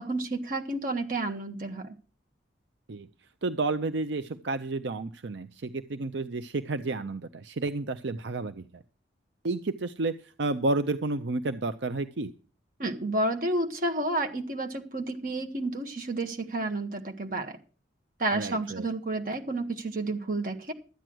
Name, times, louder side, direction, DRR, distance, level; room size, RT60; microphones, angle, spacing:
voice 1, 0.0-1.9 12.8-17.6 18.2-20.7, right 2 dB, 45° right, 5 dB, 1.6 m, -31 dB
voice 2, 3.4-8.8 9.4-12.3 18.3-18.9, right 2 dB, 75° right, 10 dB, 0.6 m, -31 dB
13.0 x 9.1 x 6.2 m, 0.38 s
head